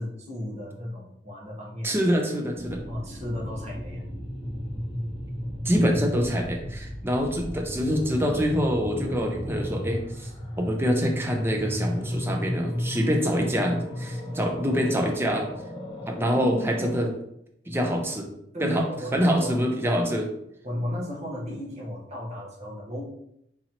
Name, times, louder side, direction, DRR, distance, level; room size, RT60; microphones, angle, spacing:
voice 1, 0.0-2.0 2.9-4.0 18.5-19.6 20.6-23.0, equal, 40° right, -5 dB, 1.1 m, -35 dB
voice 2, 1.8-2.8 5.6-10.3 10.6-15.5 16.1-17.1 17.7-18.3 18.6-18.8 19.1-20.3, equal, 15° right, 1 dB, 0.5 m, -25 dB
sound 1, 2.5-17.1, equal, 25° left, 0.8 m, -34 dB
3.9 x 2.8 x 2.8 m, 0.76 s
head